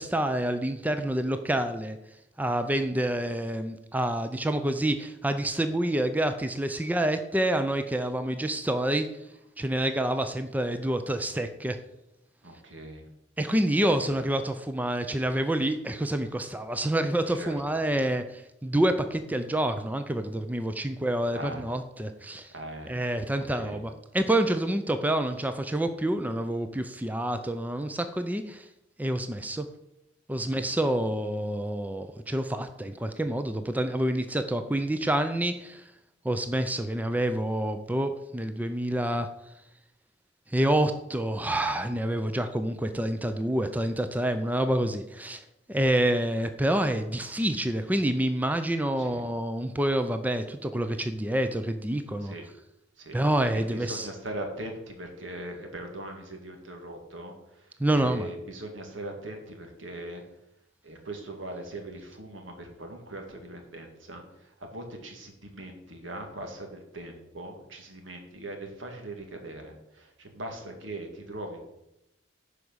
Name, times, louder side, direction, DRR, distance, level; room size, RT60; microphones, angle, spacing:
voice 1, 0.0-2.0 2.4-9.1 9.6-11.8 13.4-22.5 22.9-28.7 29.0-29.7 30.3-35.8 36.2-39.3 40.5-45.4 45.7-52.3 53.1-54.1 57.8-58.3, right 1 dB, 10° right, 8 dB, 0.5 m, -27 dB
voice 2, 12.4-13.0 14.0-14.1 17.3-17.6 21.3-21.6 22.5-23.0 23.3-23.8 49.0-49.2 52.2-52.4 53.0-53.2 53.5-60.2 60.8-71.6, right 1 dB, 85° right, 3 dB, 2.0 m, -40 dB
10.5 x 4.9 x 6.3 m, 0.86 s
head